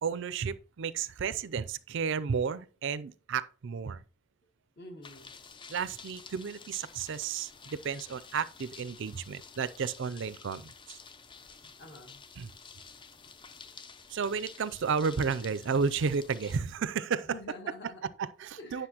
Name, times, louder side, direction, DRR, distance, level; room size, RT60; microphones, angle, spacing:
voice 1, 0.0-4.0 5.7-11.0 12.4-12.5 14.1-17.4 18.2-18.9, right 6 dB, 55° right, 0.4 m, -32 dB
voice 2, 4.8-5.3 11.6-12.2 17.2-18.1 18.6-18.9, left 2 dB, 50° left, 1.9 m, -47 dB
sound 1, 5.0-16.6, left 5 dB, 20° left, 0.5 m, -51 dB
9.6 x 6.4 x 2.9 m
head